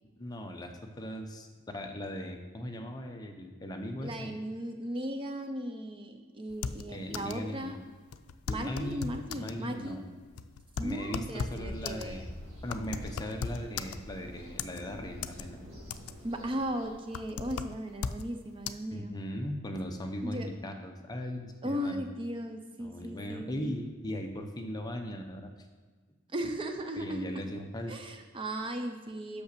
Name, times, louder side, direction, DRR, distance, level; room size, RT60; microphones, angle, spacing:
voice 1, 0.2-4.3 6.9-7.8 8.5-10.0 10.8-12.3 12.6-15.6 18.9-21.9 22.8-25.5 27.0-27.9, equal, 20° left, 4 dB, 0.7 m, -38 dB
voice 2, 4.0-7.8 8.5-10.1 10.8-12.2 16.2-19.1 20.2-20.5 21.6-23.8 26.3-27.4 27.9-29.4, right 1 dB, 25° right, 6 dB, 0.5 m, -37 dB
sound 1, 6.5-7.5 7.7-7.8 8.1-9.6 10.1-14.2 14.6-15.4 15.7-16.3 16.7-18.3 18.7-18.8, left 6 dB, 85° left, 0.4 m, -37 dB
sound 2, 11.5-16.9, equal, 70° right, 2.1 m, -46 dB
5.9 x 5.4 x 6.7 m, 1.4 s
head